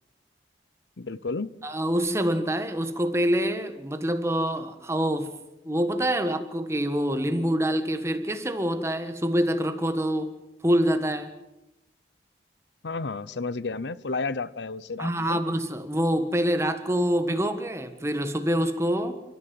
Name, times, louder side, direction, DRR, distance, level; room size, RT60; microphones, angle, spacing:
voice 1, 1.0-1.5 12.8-15.4, left 3 dB, 80° left, 0.7 m, -32 dB
voice 2, 1.6-5.4 5.6-10.4 10.6-11.3 15.0-19.2, equal, 15° right, 1.6 m, -26 dB
29.5 x 14.0 x 7.7 m
head